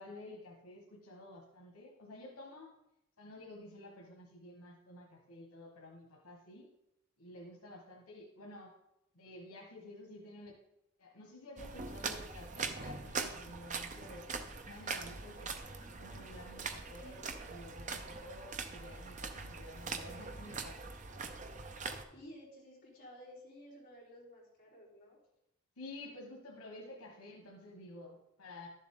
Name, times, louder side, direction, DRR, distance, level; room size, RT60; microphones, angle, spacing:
voice 1, 0.0-2.7 3.2-6.7 7.2-8.7 9.1-10.5 11.0-14.2 14.6-15.5 15.9-20.7 25.8-28.7, left 1 dB, 85° left, 0 dB, 1.5 m, -51 dB
sound 1, 11.6-22.0, right 4 dB, 35° right, 0.6 m, -42 dB
voice 2, 22.1-25.2, equal, 40° left, -6 dB, 3.8 m, -54 dB
12.0 x 7.3 x 3.8 m, 0.84 s
head